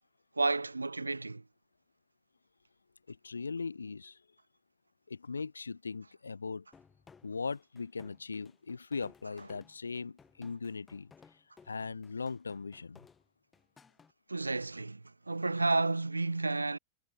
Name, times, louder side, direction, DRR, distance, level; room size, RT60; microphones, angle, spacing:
voice 1, 0.4-1.4 14.3-16.8, right 3 dB, 80° right, 0.7 m, -31 dB
voice 2, 3.1-4.2 5.1-6.6 7.2-11.1 11.7-13.0, left 4 dB, 75° left, 0.8 m, -39 dB
sound 1, 6.7-14.1, left 5 dB, 15° left, 3.9 m, -61 dB
figure-of-eight pair, 90°, 0 cm